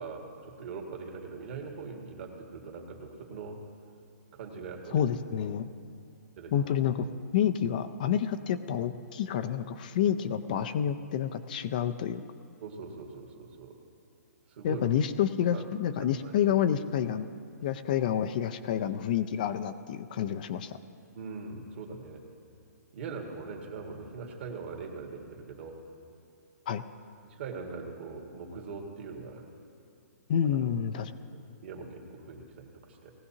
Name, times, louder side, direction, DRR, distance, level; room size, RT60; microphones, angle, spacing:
voice 1, 0.0-3.6 4.3-5.1 6.4-6.7 12.6-13.8 14.5-14.9 15.5-15.7 16.0-16.6 21.1-22.2 22.9-25.8 27.2-29.5 30.5-30.7 31.3-33.1, right 4 dB, 40° right, 0 dB, 1.8 m, -42 dB
voice 2, 4.9-5.7 6.5-7.1 7.3-12.2 14.6-17.3 17.6-20.8 26.7-26.8 30.3-31.1, left 9 dB, 30° left, 10 dB, 0.4 m, -29 dB
20.0 x 15.5 x 2.8 m, 2.6 s
hypercardioid pair, 165°, 9 cm